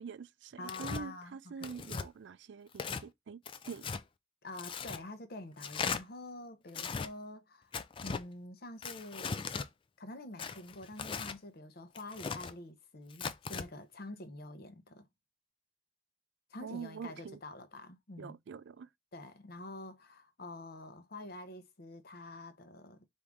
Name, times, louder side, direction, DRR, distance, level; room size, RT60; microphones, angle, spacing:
voice 1, 0.0-3.4 3.7-3.9 16.6-17.4 18.2-18.9, right 6 dB, 60° right, 0.3 m, -45 dB
voice 2, 0.6-1.7 4.4-7.7 8.0-9.4 10.0-15.1 16.5-18.4 19.1-23.0, left 2 dB, 50° left, 0.7 m, -47 dB
Tearing, 0.7-1.0 1.6-2.1 2.7-3.0 3.5-4.0 4.6-5.0 5.6-6.0 6.7-7.1 7.7-8.2 8.8-9.7 10.4-11.4 11.9-12.5 13.1-13.7, left 5 dB, 25° left, 0.3 m, -38 dB
4.7 x 2.6 x 3.5 m
head